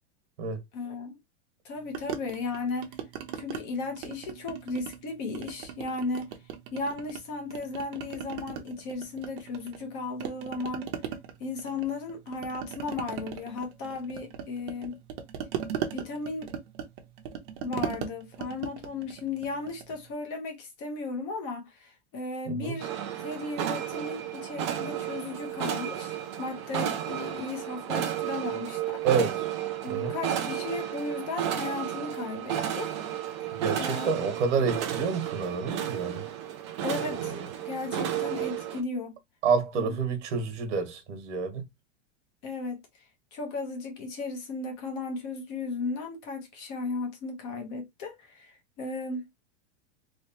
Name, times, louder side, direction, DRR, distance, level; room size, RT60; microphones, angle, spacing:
voice 1, 0.7-1.2 1.6-2.9 3.3-6.3 6.7-10.9 11.4-15.0 15.9-16.5 17.6-22.9 23.2-29.0 29.8-32.9 33.8-34.1 36.8-37.4 37.6-39.2 39.7-39.9 42.4-42.8 43.3-49.3, left 3 dB, 30° left, 1.0 m, -35 dB
sound 1, 1.9-3.6 4.0-5.0 5.3-7.2 7.5-9.9 10.2-20.0, right 9 dB, 45° right, 0.8 m, -38 dB
voice 2, 22.5-22.8 29.0-29.5 29.9-30.2 33.5-36.2 37.1-37.5 39.4-41.6, right 5 dB, 80° right, 1.3 m, -29 dB
sound 2, 22.8-38.8, right 10 dB, 25° right, 0.3 m, -33 dB
3.2 x 3.1 x 2.9 m
supercardioid pair, 175°, 35 cm